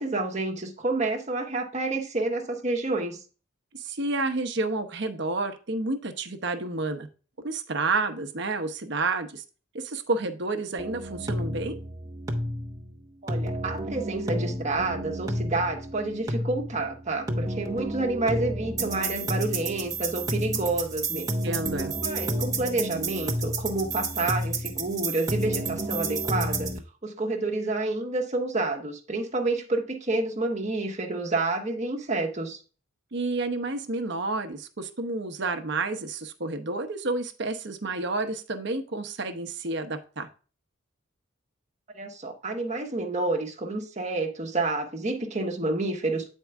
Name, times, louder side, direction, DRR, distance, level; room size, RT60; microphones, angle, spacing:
voice 1, 0.0-3.2 13.2-21.3 22.0-26.7 27.0-32.6 41.9-46.3, right 2 dB, 35° right, 1.3 m, -29 dB
voice 2, 3.7-7.1 7.4-9.4 9.7-11.8 21.1-21.9 33.1-40.3, right 3 dB, 55° right, 0.9 m, -30 dB
sound 1, 10.8-26.8, right 1 dB, 15° right, 0.9 m, -31 dB
8.3 x 4.6 x 3.4 m
head